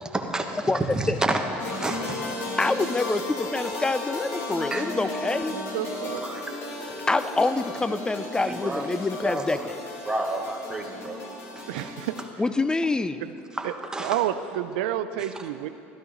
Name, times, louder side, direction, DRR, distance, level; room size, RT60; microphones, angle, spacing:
voice 1, 0.1-2.2 4.7-4.9 6.2-6.4 8.5-8.9 9.2-9.7 10.0-11.2 11.6-11.7 13.6-14.2, right 2 dB, 15° right, 3 dB, 1.2 m, -30 dB
sound 1, 1.6-12.2, left 2 dB, 55° left, 2.2 m, -34 dB
voice 2, 2.6-5.5 7.1-9.8 12.4-13.2, left 3 dB, 15° left, 12 dB, 0.5 m, -26 dB
voice 3, 5.5-6.2 11.7-12.5 13.2-13.3 13.6-13.7 14.0-15.7, right 11 dB, 85° right, 12 dB, 0.5 m, -30 dB
13.0 x 12.5 x 3.9 m, 2.9 s
supercardioid pair, 85°, 5 cm